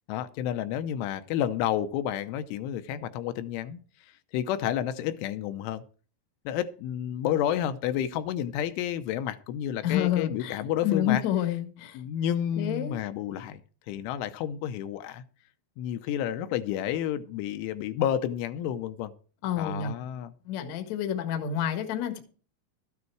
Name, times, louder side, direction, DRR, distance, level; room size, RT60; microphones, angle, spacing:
voice 1, 0.1-3.8 4.3-5.8 6.5-11.2 11.9-13.6 13.9-15.2 15.8-19.1 19.6-20.3, left 10 dB, 80° left, 3.2 m, -30 dB
voice 2, 9.8-12.0 12.6-13.0 19.4-19.9 20.5-22.2, left 10 dB, 60° left, 1.9 m, -29 dB
13.5 x 9.6 x 4.6 m
omnidirectional pair, 5.7 m